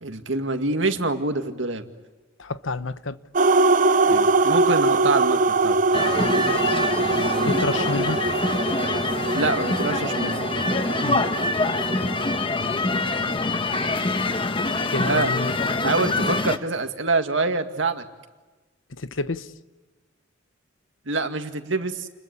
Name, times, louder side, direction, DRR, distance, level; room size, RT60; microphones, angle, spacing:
voice 1, 0.0-1.9 4.1-5.8 9.3-10.4 15.0-15.3 15.8-18.0 21.1-22.1, right 3 dB, 75° right, 6 dB, 2.2 m, -25 dB
voice 2, 2.4-3.2 6.2-6.4 7.4-8.2 11.0-11.2 14.9-15.5 15.8-15.9 19.0-19.5, left 3 dB, 90° left, 13 dB, 1.0 m, -29 dB
sound 1, 3.3-12.4, right 3 dB, 40° right, 0.8 m, -22 dB
sound 2, 5.9-16.6, left 2 dB, 25° left, 1.3 m, -25 dB
29.5 x 21.5 x 8.5 m, 1.3 s
head